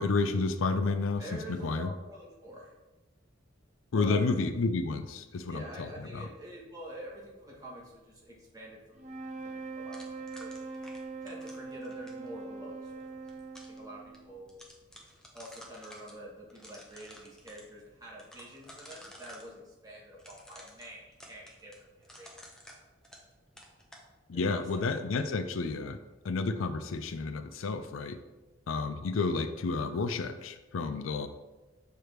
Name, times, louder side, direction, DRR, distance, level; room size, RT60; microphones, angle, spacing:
voice 1, 0.0-1.9 3.9-5.9 6.1-6.3 24.3-26.0 26.2-28.2 28.7-31.3, left 3 dB, 85° left, 10 dB, 0.4 m, -31 dB
voice 2, 1.2-2.7 3.9-4.3 5.5-10.0 10.3-10.5 11.2-13.0 13.7-14.5 15.3-21.7 22.0-22.3 24.3-25.3, right 1 dB, 20° right, -3 dB, 1.2 m, -46 dB
sound 1, 8.9-14.4, right 4 dB, 35° right, 0.7 m, -42 dB
sound 2, 9.9-12.3 13.0-13.8 14.1-14.2 14.5-16.1 16.5-17.6 18.2-19.5 20.2-23.3 23.6-24.1, equal, 5° left, 0.7 m, -52 dB
6.4 x 3.4 x 4.5 m, 1.1 s
head